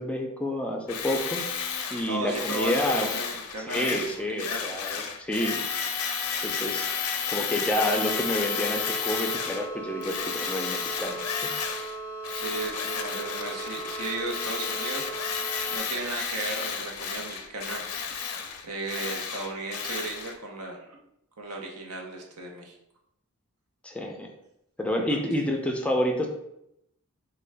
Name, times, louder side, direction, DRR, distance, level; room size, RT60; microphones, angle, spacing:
voice 1, 0.0-1.4 1.9-3.1 3.7-5.6 6.4-7.0 7.3-11.3 23.8-24.3 24.8-26.3, left 1 dB, 5° left, 1 dB, 0.3 m, -29 dB
Tools, 0.9-9.7 10.0-12.0 12.2-20.3, left 6 dB, 90° left, 0.5 m, -32 dB
voice 2, 2.0-4.6 12.3-15.1 15.7-18.1 18.6-21.0 21.4-22.7, right 2 dB, 90° right, 0 dB, 0.7 m, -35 dB
sound 1, 7.7-15.8, right 2 dB, 60° right, 1.4 m, -38 dB
3.7 x 2.2 x 3.3 m, 0.80 s
head